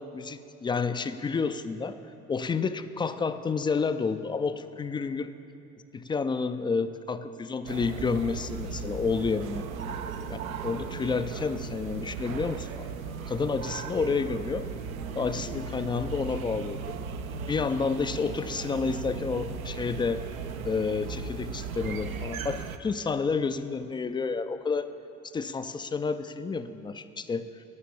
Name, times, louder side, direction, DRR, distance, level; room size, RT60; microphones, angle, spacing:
voice 1, 0.0-2.0 2.3-5.3 5.9-9.6 10.3-12.9 13.3-14.7 15.1-17.0 17.5-20.3 20.6-24.9 25.3-27.6, left 5 dB, 15° left, 11 dB, 0.3 m, -30 dB
sound 1, 7.7-22.8, right 5 dB, 80° right, 0.7 m, -36 dB
17.0 x 5.8 x 7.1 m, 2.9 s
figure-of-eight pair, 55°, 41 cm